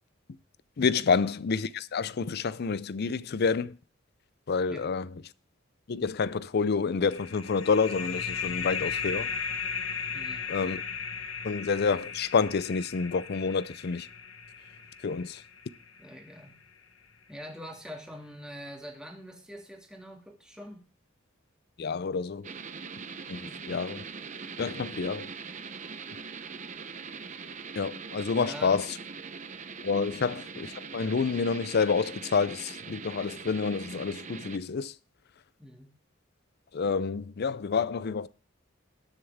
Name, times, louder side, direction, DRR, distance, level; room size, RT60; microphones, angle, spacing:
voice 1, 0.8-3.7 4.5-5.1 5.9-9.3 10.5-10.8 11.4-14.1 15.0-15.4 21.8-22.5 23.3-24.0 24.6-25.3 27.8-28.8 29.8-34.9 36.7-38.3, left 5 dB, 55° left, 0.5 m, -28 dB
sound 1, 7.1-16.4, left 6 dB, 80° left, 1.2 m, -36 dB
voice 2, 10.1-10.5 16.0-16.5 17.3-20.8 23.4-23.6 28.3-28.8 35.6-35.9, equal, 5° right, 2.2 m, -44 dB
sound 2, 22.4-34.6, right 5 dB, 40° right, 0.8 m, -42 dB
19.5 x 6.7 x 3.6 m
head